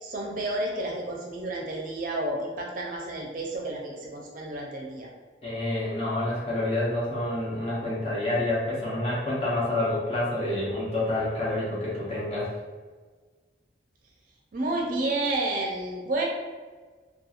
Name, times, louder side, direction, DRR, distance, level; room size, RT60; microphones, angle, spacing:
voice 1, 0.0-5.1 14.5-16.2, right 2 dB, 50° right, -1 dB, 0.4 m, -30 dB
voice 2, 5.4-12.5, left 1 dB, 35° left, -7 dB, 0.6 m, -28 dB
2.9 x 2.3 x 2.4 m, 1.4 s
head